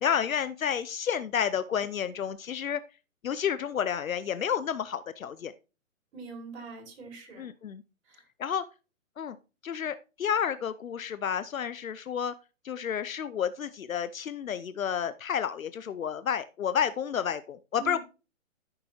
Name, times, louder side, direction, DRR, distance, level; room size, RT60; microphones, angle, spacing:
voice 1, 0.0-2.8 3.2-5.5 7.4-7.8 8.4-8.6 9.2-9.4 9.6-12.3 12.6-18.0, left 8 dB, 75° left, 0.7 m, -30 dB
voice 2, 6.1-7.5 8.0-8.3 17.8-18.0, right 4 dB, 50° right, 5.5 m, -43 dB
13.5 x 6.7 x 3.0 m
figure-of-eight pair, 130°, 41 cm